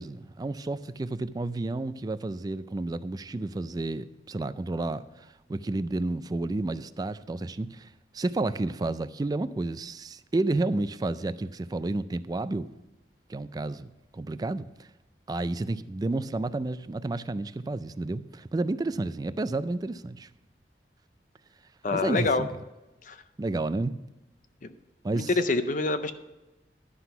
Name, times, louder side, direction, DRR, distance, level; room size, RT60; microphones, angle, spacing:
voice 1, 0.0-12.7 13.3-14.9 15.3-20.3 21.9-22.5 23.4-24.0 25.0-25.3, right 2 dB, 20° right, 0.3 m, -31 dB
voice 2, 21.8-22.4 23.1-23.2 24.6-24.7 25.1-26.1, left 3 dB, 45° left, 0.5 m, -26 dB
11.5 x 6.0 x 5.6 m
head